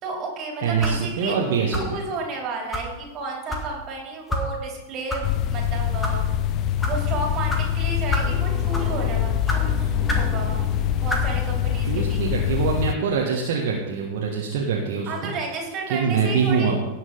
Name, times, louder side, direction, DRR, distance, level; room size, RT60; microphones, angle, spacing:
voice 1, 0.0-1.3 1.7-6.2 6.8-10.6 11.0-12.2 15.1-16.7, right 3 dB, 35° right, 0 dB, 3.2 m, -32 dB
voice 2, 0.6-2.0 11.8-15.3 15.9-16.8, right 6 dB, 50° right, -1 dB, 1.4 m, -24 dB
sound 1, 0.8-1.1 1.7-2.0 2.7-2.9 3.5-3.7 4.3-4.5 5.1-5.2 5.8-6.2 6.8-7.0 7.5-7.6 8.1-8.3 8.7-9.0 9.5-9.6 10.1-10.3 11.1-11.3, left 1 dB, 10° left, 1.9 m, -27 dB
sound 2, 5.2-13.0, left 10 dB, 35° left, 0.6 m, -24 dB
sound 3, 8.1-12.2, right 2 dB, 10° right, 2.0 m, -40 dB
17.5 x 6.3 x 3.9 m, 1.1 s
figure-of-eight pair, 90°, 0 cm